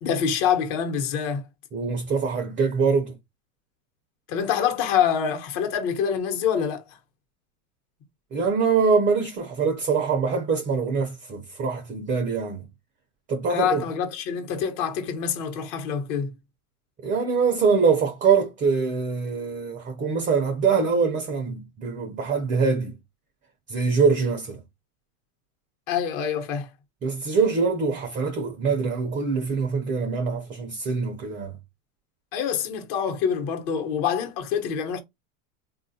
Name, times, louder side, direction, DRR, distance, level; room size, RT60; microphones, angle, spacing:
voice 1, 0.0-1.4 4.3-6.8 13.5-16.3 25.9-26.7 32.3-35.0, left 7 dB, 50° left, 1.0 m, -26 dB
voice 2, 1.7-3.2 8.3-12.6 13.3-13.8 17.0-22.9 23.7-24.6 27.0-31.6, right 5 dB, 20° right, 0.4 m, -24 dB
3.6 x 2.4 x 2.7 m
supercardioid pair, 120°, 43 cm